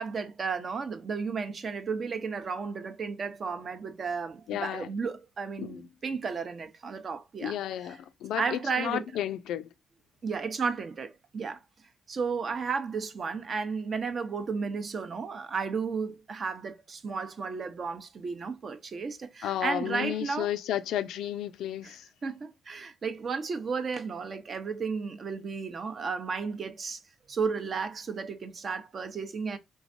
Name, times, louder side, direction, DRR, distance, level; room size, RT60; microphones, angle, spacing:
voice 1, 0.0-7.6 7.9-8.0 8.4-9.1 10.2-11.6 12.1-20.5 21.8-21.9 22.2-27.0 27.3-29.6, right 5 dB, 45° right, 0.6 m, -33 dB
voice 2, 4.5-4.9 5.6-5.9 7.4-9.7 19.4-22.0, left 11 dB, 80° left, 0.3 m, -32 dB
3.5 x 3.1 x 2.5 m
cardioid pair, 80°, 0 cm